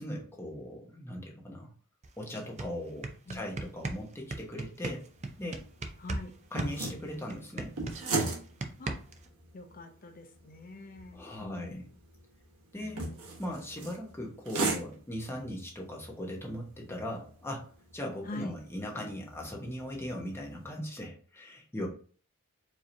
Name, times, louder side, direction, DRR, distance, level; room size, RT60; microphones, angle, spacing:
voice 1, 0.0-1.7 2.2-5.1 5.4-5.6 6.5-7.7 11.1-11.8 12.7-13.1 13.4-17.7 17.9-21.9, left 1 dB, 10° left, -1 dB, 1.0 m, -39 dB
sound 1, 2.0-2.1 2.4-6.3 6.6-9.3, right 2 dB, 30° right, 0.5 m, -37 dB
sound 2, 4.8-20.7, right 3 dB, 85° right, 1.2 m, -40 dB
voice 2, 6.0-6.3 8.8-8.9 9.5-11.9 12.8-13.2 18.3-18.6, left 2 dB, 40° left, 6 dB, 0.6 m, -44 dB
4.7 x 2.9 x 2.6 m, 0.41 s
head